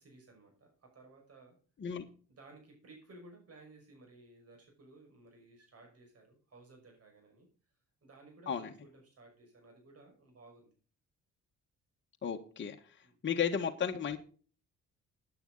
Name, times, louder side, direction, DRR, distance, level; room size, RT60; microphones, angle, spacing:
voice 1, 0.0-1.6 2.3-7.5 8.0-10.7 13.0-13.2, right 2 dB, 50° right, 2 dB, 6.0 m, -57 dB
voice 2, 12.2-12.8 13.2-14.2, left 7 dB, 40° left, 2 dB, 1.5 m, -33 dB
14.5 x 10.0 x 4.0 m, 0.40 s
cardioid pair, 90°, 30 cm